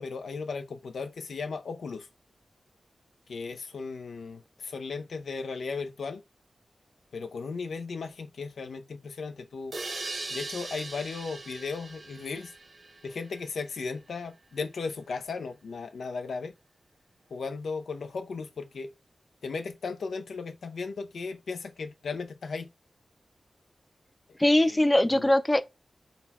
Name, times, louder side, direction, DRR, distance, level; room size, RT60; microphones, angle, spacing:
voice 1, 0.0-2.1 3.3-6.2 7.1-9.7 10.3-12.5 13.0-16.5 17.3-18.9 19.4-22.7 25.1-25.3, left 4 dB, 90° left, 0.5 m, -36 dB
sound 1, 9.7-13.5, right 3 dB, 55° right, 0.9 m, -40 dB
voice 2, 24.4-25.6, left 1 dB, 20° left, 0.4 m, -21 dB
4.0 x 2.1 x 4.2 m
cardioid pair, 60°, 0 cm